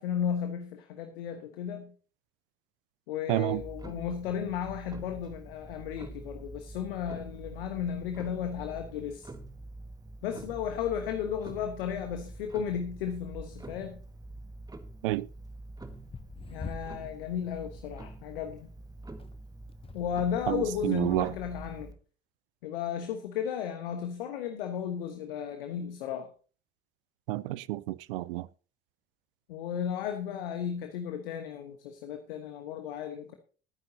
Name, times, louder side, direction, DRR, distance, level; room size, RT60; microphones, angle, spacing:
voice 1, 0.0-1.9 3.1-9.3 10.2-14.0 16.5-18.7 19.9-21.9 22.6-26.3 29.5-33.4, left 8 dB, 70° left, 1.3 m, -34 dB
voice 2, 3.3-3.6 15.0-15.3 20.5-21.3 27.3-28.5, right 17 dB, 65° right, 0.5 m, -29 dB
Clock, 3.5-21.9, right 2 dB, 15° right, 1.6 m, -46 dB
sound 1, 13.4-13.9 14.8-17.2 17.6-18.0 19.1-20.3 21.2-21.3, left 5 dB, 20° left, 0.8 m, -47 dB
21.0 x 9.5 x 2.8 m
figure-of-eight pair, 55°, 29 cm